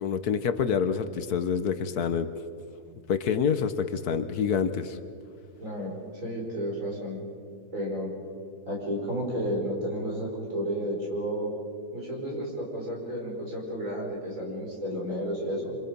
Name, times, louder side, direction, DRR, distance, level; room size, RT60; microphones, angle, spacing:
voice 1, 0.0-2.3 3.1-5.0, left 7 dB, 70° left, 10 dB, 1.4 m, -27 dB
voice 2, 5.6-7.3 7.7-8.1 8.7-11.5 11.9-15.8, equal, 50° right, -3 dB, 5.7 m, -32 dB
27.0 x 26.0 x 5.3 m, 2.4 s
omnidirectional pair, 1.7 m